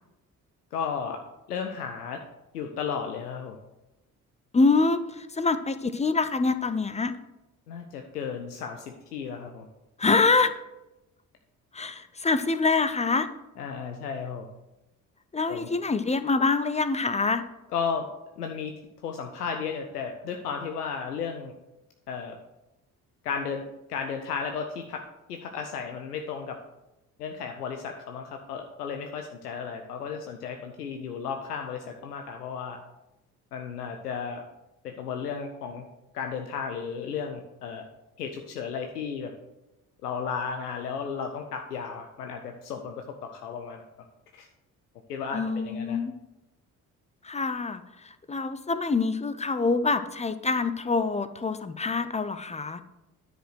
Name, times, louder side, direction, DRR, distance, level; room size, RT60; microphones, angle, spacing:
voice 1, 0.7-1.2 1.5-2.2 2.5-3.6 7.7-9.7 13.6-14.5 15.5-15.7 17.7-18.1 18.4-18.7 19.0-21.5 22.1-22.4 23.2-23.6 23.9-25.0 25.3-26.6 27.2-32.8 33.5-34.4 34.8-35.9 36.1-37.8 38.2-39.3 40.0-44.1 44.3-44.5 45.1-46.0, left 6 dB, 85° left, 4 dB, 0.6 m, -34 dB
voice 2, 4.5-7.1 10.0-10.5 11.7-13.3 15.3-17.4 45.3-46.1 47.2-52.8, left 4 dB, 15° left, 12 dB, 0.6 m, -25 dB
10.0 x 5.1 x 6.3 m, 0.98 s
figure-of-eight pair, 45°, 46 cm